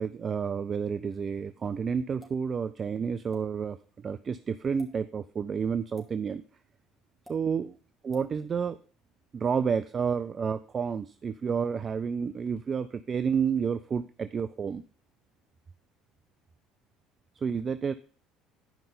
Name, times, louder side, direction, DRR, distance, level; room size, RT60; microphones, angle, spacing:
voice 1, 0.0-6.4 7.3-7.7 8.0-8.8 9.3-14.8 17.4-17.9, right 6 dB, 35° right, 12 dB, 0.4 m, -30 dB
sound 1, 2.2-2.4 3.3-3.4 4.7-4.9 6.0-6.1 7.2-7.4 8.1-8.3, equal, 5° right, 2.8 m, -52 dB
10.5 x 5.4 x 5.3 m, 0.42 s
figure-of-eight pair, 60°, 0 cm